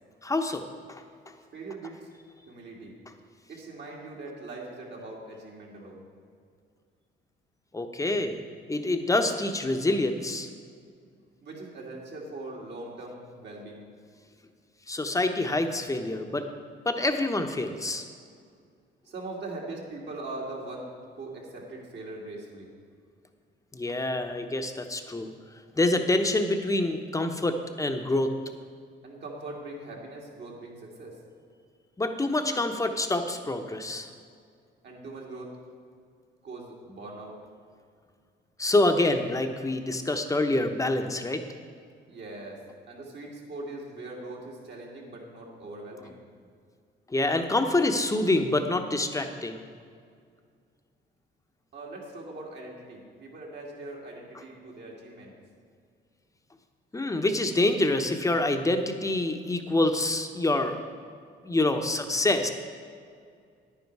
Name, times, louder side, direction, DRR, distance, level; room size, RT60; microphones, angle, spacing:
voice 1, 0.2-0.6 7.7-8.4 8.7-10.5 14.9-16.5 16.8-18.1 23.7-25.3 25.8-28.3 32.0-34.1 38.6-41.4 47.1-49.6 56.9-60.8 61.4-62.5, left 2 dB, 15° left, 6 dB, 0.9 m, -26 dB
voice 2, 1.5-2.1 2.5-2.9 3.5-6.1 11.4-13.9 19.0-22.7 29.0-31.2 34.8-35.5 36.4-37.4 42.1-42.6 42.9-46.2 51.7-55.3, right 2 dB, 60° right, -2 dB, 2.6 m, -41 dB
10.0 x 9.6 x 4.7 m, 2.2 s
cardioid pair, 90°, 20 cm